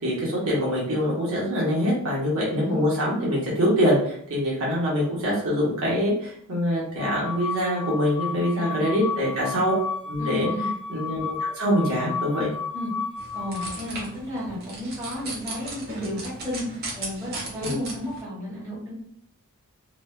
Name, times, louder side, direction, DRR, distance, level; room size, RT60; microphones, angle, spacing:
voice 1, 0.0-9.7 10.1-10.5 10.9-12.5 17.6-17.8, equal, 70° right, -5 dB, 1.0 m, -24 dB
voice 2, 2.3-3.0 8.5-9.3 10.2-10.7 12.7-12.9 13.3-16.6 16.9-18.9, equal, 15° right, -7 dB, 1.2 m, -33 dB
sound 1, 7.0-14.0, left 5 dB, 25° left, 0.3 m, -33 dB
sound 2, 13.2-18.2, right 2 dB, 45° right, 0.8 m, -37 dB
3.0 x 2.1 x 2.3 m, 0.67 s
head